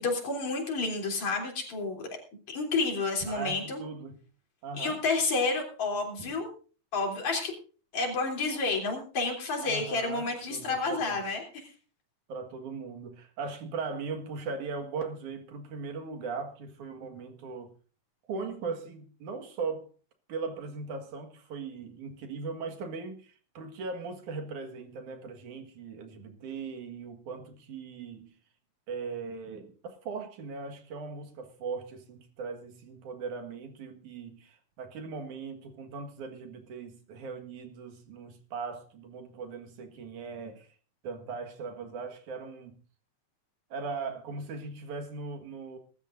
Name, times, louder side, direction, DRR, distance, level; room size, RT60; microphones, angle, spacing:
voice 1, 0.0-2.1 2.5-3.8 4.8-6.5 6.9-7.5 7.9-11.7, left 3 dB, 70° left, 4.7 m, -30 dB
voice 2, 3.3-4.2 4.6-5.0 6.2-6.3 9.6-11.2 12.3-17.7 18.3-19.9 20.3-28.3 28.9-40.7 41.0-42.8 43.7-45.8, right 4 dB, 85° right, 3.2 m, -39 dB
22.5 x 13.0 x 2.6 m
omnidirectional pair, 3.4 m